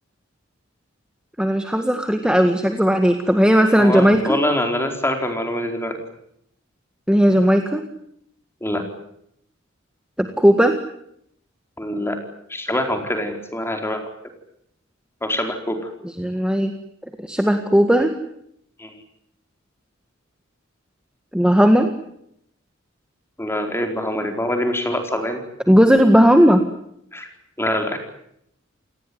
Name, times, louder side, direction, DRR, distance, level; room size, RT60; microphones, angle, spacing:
voice 1, 1.4-4.4 7.1-7.8 10.2-10.8 16.2-16.7 17.2-18.1 21.3-21.9 25.7-26.6, equal, 5° right, 6 dB, 1.7 m, -16 dB
voice 2, 3.8-6.0 8.6-8.8 11.8-12.2 12.5-14.0 15.2-15.9 18.8-19.0 23.4-25.4 27.1-27.3 27.6-28.0, left 1 dB, 10° left, 5 dB, 4.4 m, -24 dB
29.0 x 18.5 x 9.6 m, 0.74 s
head